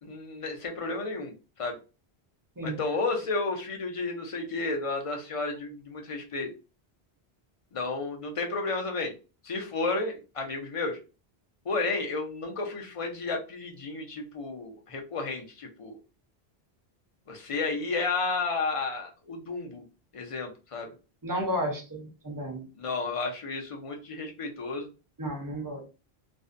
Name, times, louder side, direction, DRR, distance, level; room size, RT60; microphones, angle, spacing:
voice 1, 0.0-1.3 1.6-1.8 2.6-6.5 7.7-9.1 9.4-11.0 11.7-16.0 17.3-19.8 20.1-20.9 22.8-24.9, left 3 dB, 45° left, 2 dB, 0.5 m, -32 dB
voice 2, 21.2-22.6 25.2-25.8, equal, 25° right, 0 dB, 0.6 m, -32 dB
2.5 x 2.1 x 2.4 m, 0.32 s
omnidirectional pair, 1.1 m